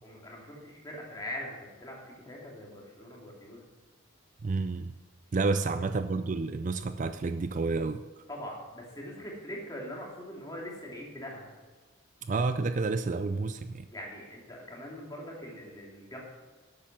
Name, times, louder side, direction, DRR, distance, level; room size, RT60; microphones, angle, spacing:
voice 1, 0.0-3.6 8.3-11.5 13.9-16.2, left 1 dB, 20° left, -3 dB, 2.9 m, -42 dB
voice 2, 4.4-4.9 5.3-8.2 12.2-13.9, right 3 dB, 35° right, 10 dB, 0.4 m, -30 dB
11.5 x 8.7 x 6.0 m, 1.3 s
head